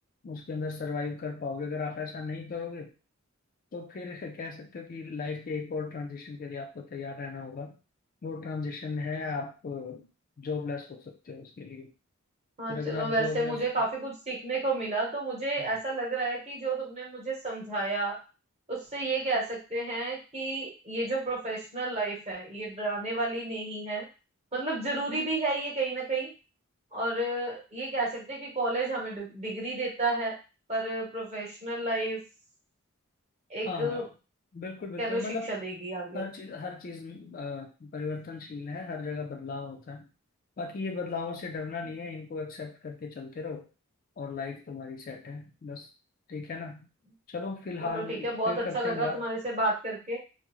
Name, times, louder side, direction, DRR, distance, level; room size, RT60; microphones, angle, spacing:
voice 1, 0.2-2.9 3.7-7.7 8.2-10.1 10.4-11.9 12.7-13.7 15.6-15.7 33.7-34.1 34.5-35.5 36.1-40.1 40.6-43.7 44.2-45.9 46.3-46.9 47.3-49.3, left 4 dB, 40° left, 3 dB, 0.3 m, -36 dB
voice 2, 12.6-18.2 18.7-24.1 24.5-26.3 26.9-30.4 30.7-32.2 33.5-34.1 35.0-36.2 47.8-50.2, right 2 dB, 30° right, -3 dB, 0.9 m, -31 dB
2.4 x 2.0 x 3.0 m, 0.31 s
head